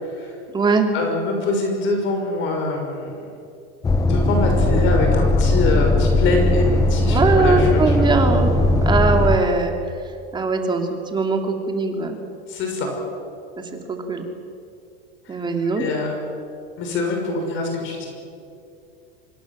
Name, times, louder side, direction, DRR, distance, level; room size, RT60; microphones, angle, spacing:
voice 1, 0.0-0.4 0.9-3.2 4.0-8.1 12.5-12.9 15.3-15.5 15.8-16.2 16.8-18.1, left 3 dB, 40° left, 2 dB, 6.2 m, -24 dB
voice 2, 0.5-0.9 7.0-8.5 8.8-9.7 10.3-12.2 13.6-14.3 15.3-15.8, right 3 dB, 15° right, 3 dB, 2.9 m, -21 dB
sound 1, 3.8-9.4, left 1 dB, 10° left, 1.0 m, -18 dB
26.5 x 23.0 x 7.6 m, 2.5 s
supercardioid pair, 150°, 30 cm